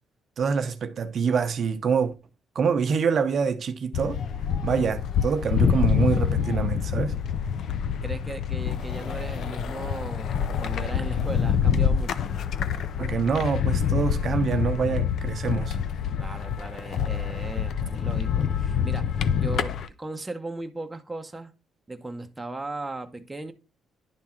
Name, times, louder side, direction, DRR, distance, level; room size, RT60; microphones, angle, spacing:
voice 1, 0.4-2.1 2.5-4.2 4.6-7.2 13.0-15.8, right 6 dB, 55° right, 0.7 m, -26 dB
sound 1, 3.9-19.9, left 8 dB, 65° left, 0.6 m, -26 dB
voice 2, 8.0-12.2 16.2-21.5 21.9-23.5, right 2 dB, 15° right, 0.8 m, -37 dB
10.5 x 3.6 x 4.3 m
cardioid pair, 100°, 0 cm